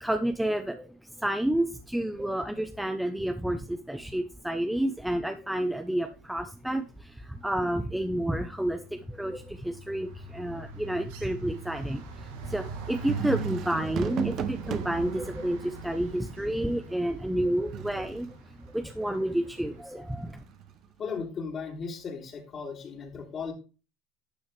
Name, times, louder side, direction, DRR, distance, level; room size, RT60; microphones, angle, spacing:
voice 1, 0.0-18.3 18.7-20.4, right 1 dB, 5° right, 7 dB, 0.7 m, -30 dB
sound 1, 6.4-6.8 7.1-20.2, right 2 dB, 85° right, 2.2 m, -44 dB
sound 2, 13.1-18.3 20.1-21.2, right 9 dB, 50° right, 0.9 m, -37 dB
voice 2, 21.0-23.5, left 5 dB, 35° left, 2 dB, 3.2 m, -36 dB
11.5 x 6.1 x 3.3 m, 0.33 s
supercardioid pair, 105°, 0 cm